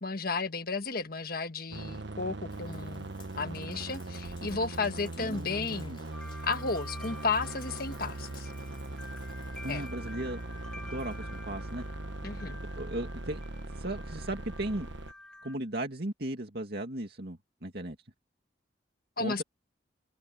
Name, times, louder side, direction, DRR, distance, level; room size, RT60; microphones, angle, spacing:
voice 1, 0.0-3.1 3.4-6.0 6.4-8.5 9.7-9.9 12.2-12.6 19.2-19.4, left 4 dB, 55° left, 1.4 m, -33 dB
sound 1, 1.7-15.1, right 2 dB, 75° right, 1.2 m, -40 dB
Sink (filling or washing), 2.5-12.2, left 2 dB, 25° left, 3.8 m, -56 dB
voice 2, 5.2-6.0 9.6-11.8 12.7-13.4 13.7-14.9 15.4-18.0 19.2-19.4, right 1 dB, 60° right, 2.5 m, -36 dB
sound 2, 6.1-15.6, left 1 dB, 5° left, 1.0 m, -49 dB
open air
head